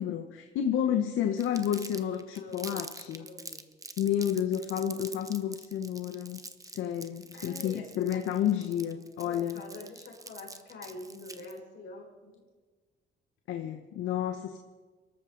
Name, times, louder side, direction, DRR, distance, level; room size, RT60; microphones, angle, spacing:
voice 1, 0.0-3.3 4.0-9.6 13.5-14.6, left 9 dB, 85° left, 6 dB, 0.9 m, -31 dB
Crumpling crinkling, 1.4-11.6, right 3 dB, 15° right, 1.0 m, -45 dB
voice 2, 2.3-2.8 3.2-3.7 7.3-7.8 9.2-12.4, left 2 dB, 65° left, -1 dB, 5.2 m, -46 dB
23.5 x 13.0 x 3.9 m, 1.4 s
cardioid pair, 90°, 20 cm